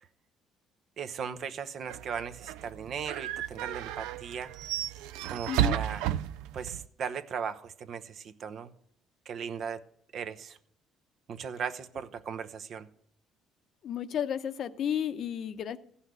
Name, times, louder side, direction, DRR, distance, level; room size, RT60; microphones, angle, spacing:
voice 1, 1.0-4.5 5.3-6.0 6.5-8.7 9.3-9.8 10.1-10.6 11.3-12.9, right 7 dB, 55° right, 9 dB, 0.9 m, -37 dB
sound 1, 1.9-6.9, right 12 dB, 90° right, 0.5 m, -33 dB
voice 2, 5.5-5.8 13.8-15.8, left 9 dB, 60° left, 12 dB, 0.8 m, -32 dB
14.5 x 5.7 x 8.0 m, 0.68 s
cardioid pair, 90°, 0 cm